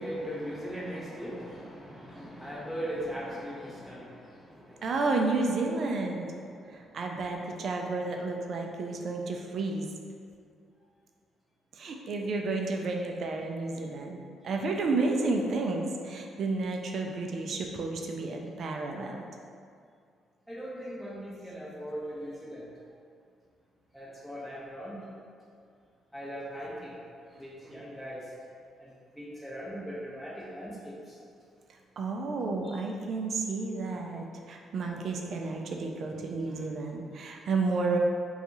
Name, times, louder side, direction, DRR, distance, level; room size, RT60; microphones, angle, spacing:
voice 1, 0.0-4.9 6.5-6.8 20.5-22.6 23.9-25.0 26.1-26.9 27.4-28.2 28.8-31.1 34.8-34.9, equal, ahead, -8 dB, 1.0 m, -39 dB
voice 2, 4.8-6.3 6.7-9.9 11.7-19.3 27.6-27.8 32.0-38.0, right 3 dB, 60° right, 2 dB, 0.4 m, -31 dB
2.7 x 2.4 x 4.0 m, 2.3 s
cardioid pair, 90°, 0 cm